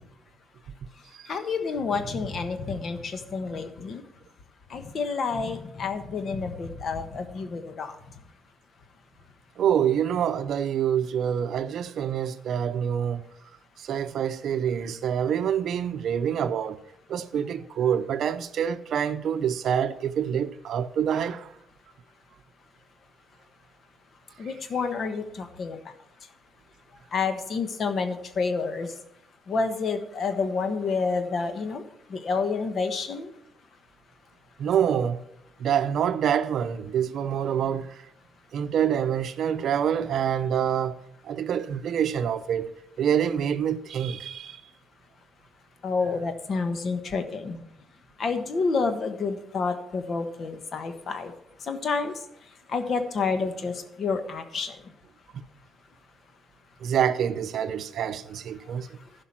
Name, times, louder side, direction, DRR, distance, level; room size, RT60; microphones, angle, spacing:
voice 1, 1.3-4.0 4.7-8.0 24.4-25.9 27.1-28.9 29.5-31.8 32.1-33.3 45.8-47.6 48.2-51.3 51.6-52.1 52.7-54.8, left 4 dB, 55° left, 1.3 m, -29 dB
voice 2, 9.6-13.2 13.8-16.8 17.1-21.5 34.6-35.2 35.6-37.9 38.5-41.0 41.2-44.6 56.8-58.9, right 8 dB, 70° right, 0.6 m, -26 dB
11.5 x 5.2 x 7.4 m
cardioid pair, 90°, 0 cm